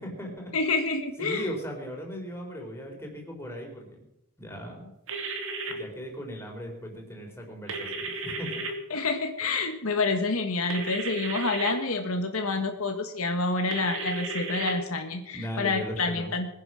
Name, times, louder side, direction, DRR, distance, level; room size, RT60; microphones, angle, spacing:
voice 1, 0.0-0.5 1.2-4.0 4.4-4.9 5.7-8.6 15.3-16.3, equal, 10° left, 0 dB, 3.9 m, -38 dB
voice 2, 0.5-1.4 8.9-16.5, left 3 dB, 75° left, 5 dB, 1.5 m, -28 dB
sound 1, 5.1-5.7 7.7-8.7 10.7-11.7 13.7-14.7, right 3 dB, 60° right, 2.6 m, -33 dB
21.0 x 10.0 x 6.3 m, 0.87 s
head